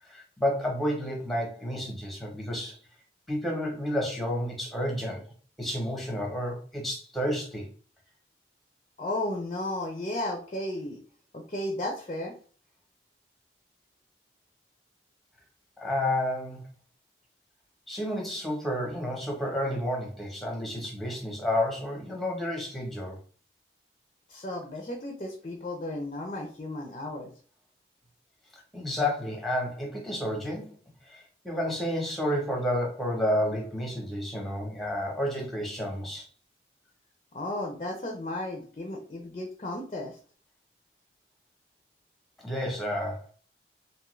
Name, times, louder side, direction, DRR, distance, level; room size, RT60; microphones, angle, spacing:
voice 1, 0.1-2.8 3.3-5.2 5.6-7.7 15.8-16.6 17.9-23.2 28.5-30.7 31.0-36.3 42.4-43.3, left 1 dB, ahead, -1 dB, 0.7 m, -30 dB
voice 2, 9.0-11.0 11.3-12.3 24.3-27.3 37.3-40.2, left 1 dB, 35° left, 1 dB, 0.4 m, -34 dB
2.6 x 2.3 x 3.0 m, 0.42 s
head